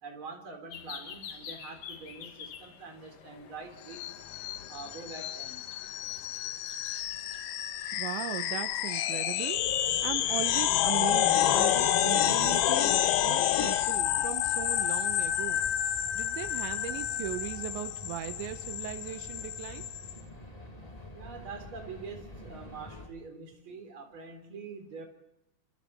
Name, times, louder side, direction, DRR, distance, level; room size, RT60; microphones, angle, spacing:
voice 1, 0.0-4.2 4.7-5.7 21.1-25.0, right 4 dB, 30° right, 4 dB, 4.4 m, -45 dB
sound 1, 0.7-8.8, left 7 dB, 55° left, 3.1 m, -48 dB
sound 2, 3.9-20.1, left 11 dB, 80° left, 3.4 m, -29 dB
voice 2, 7.9-12.9 13.2-15.6 16.2-19.9, right 12 dB, 80° right, 8 dB, 3.2 m, -38 dB
sound 3, 9.5-23.1, left 1 dB, 15° left, 1.8 m, -47 dB
29.5 x 26.5 x 4.4 m, 0.83 s
omnidirectional pair, 5.3 m